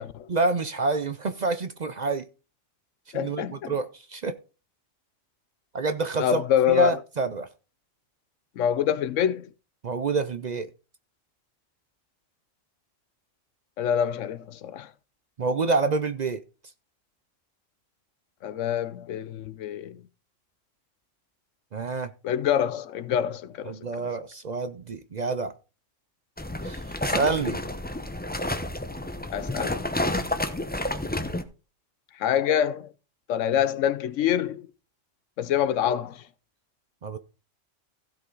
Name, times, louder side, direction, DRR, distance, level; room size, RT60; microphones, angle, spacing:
voice 1, 0.3-2.3 3.1-4.4 5.7-7.5 9.8-10.7 15.4-16.4 21.7-22.1 23.7-25.5 26.6-27.6 37.0-37.2, right 3 dB, 45° right, 0.6 m, -27 dB
voice 2, 3.1-3.7 6.2-7.0 8.6-9.5 13.8-14.9 18.4-20.0 22.2-23.7 29.3-29.8 32.2-32.9 33.3-34.7 35.4-36.2, left 9 dB, 90° left, 1.0 m, -26 dB
sound 1, 26.4-31.4, left 1 dB, 10° left, 0.6 m, -30 dB
16.0 x 5.6 x 3.9 m
omnidirectional pair, 1.3 m